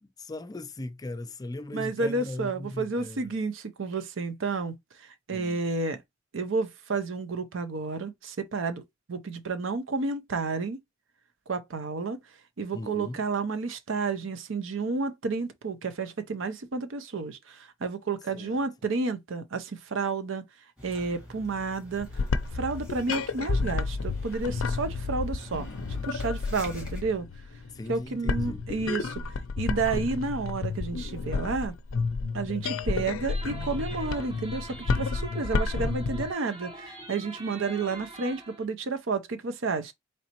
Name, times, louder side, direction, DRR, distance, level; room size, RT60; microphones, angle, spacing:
voice 1, 0.0-3.3 5.3-5.6 12.7-13.2 18.3-18.6 27.7-28.6, left 2 dB, 20° left, 0.4 m, -39 dB
voice 2, 1.7-4.7 5.3-6.0 6.3-8.8 9.1-10.8 11.5-12.2 12.6-20.4 20.8-22.1 22.5-25.7 26.0-27.3 27.9-29.1 29.6-31.7 32.3-39.9, right 4 dB, 70° right, 0.6 m, -31 dB
sound 1, 20.8-27.0, left 1 dB, 5° right, 2.1 m, -46 dB
sound 2, 22.0-36.3, left 4 dB, 85° left, 0.4 m, -31 dB
sound 3, 33.3-38.6, right 1 dB, 30° right, 1.3 m, -44 dB
4.0 x 3.2 x 2.9 m
head